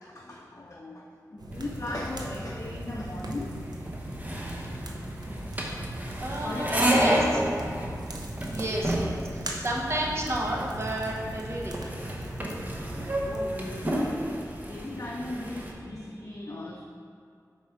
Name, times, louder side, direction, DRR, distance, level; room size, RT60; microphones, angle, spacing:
voice 1, 0.0-3.6 5.7-5.9 6.2-8.0 8.4-9.0 13.2-16.9, left 1 dB, 45° left, -1 dB, 0.5 m, -39 dB
sound 1, 1.4-13.8, right 1 dB, 80° right, 0.7 m, -38 dB
sound 2, 1.5-15.7, right 1 dB, 25° right, 0.9 m, -31 dB
voice 2, 6.2-7.4 8.5-9.2 9.6-11.8, right 1 dB, 45° right, -3 dB, 1.1 m, -31 dB
4.6 x 4.4 x 5.8 m, 2.3 s
wide cardioid pair, 45°, 7 cm